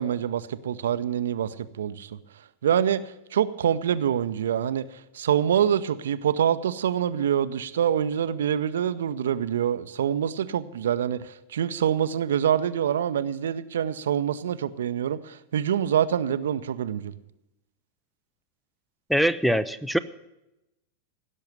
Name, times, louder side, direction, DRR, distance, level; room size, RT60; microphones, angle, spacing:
voice 1, 0.0-2.2 2.6-17.1, right 9 dB, 65° right, 13 dB, 0.6 m, -26 dB
voice 2, 19.1-20.0, equal, ahead, 16 dB, 0.5 m, -23 dB
16.0 x 6.5 x 9.7 m, 0.90 s
figure-of-eight pair, 90°, 0 cm